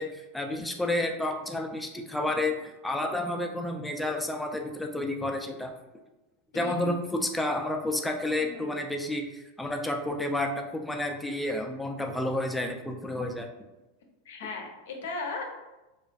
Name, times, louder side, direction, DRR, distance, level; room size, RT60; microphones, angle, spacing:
voice 1, 0.0-5.7 6.5-13.5, left 1 dB, 5° left, 4 dB, 0.3 m, -30 dB
voice 2, 6.5-7.0 8.4-8.8 14.3-15.4, left 3 dB, 80° left, 2 dB, 0.5 m, -37 dB
2.4 x 2.3 x 2.2 m, 1.0 s
hypercardioid pair, 110°, 0 cm